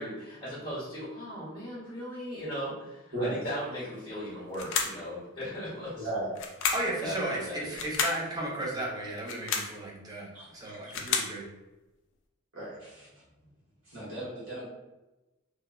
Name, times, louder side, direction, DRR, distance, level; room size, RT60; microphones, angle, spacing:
voice 1, 0.0-6.1 7.0-7.6, equal, 25° left, -8 dB, 0.7 m, -38 dB
sound 1, 4.5-5.1 6.4-7.0 7.7-8.2 9.2-9.8 10.6-11.4, left 5 dB, 60° left, 0.4 m, -31 dB
voice 2, 5.9-6.3 10.3-10.9 12.5-13.1 13.9-14.7, right 1 dB, 75° right, -8 dB, 1.2 m, -36 dB
voice 3, 6.7-11.5, right 1 dB, 20° right, -4 dB, 0.5 m, -34 dB
2.9 x 2.0 x 2.3 m, 1.0 s
head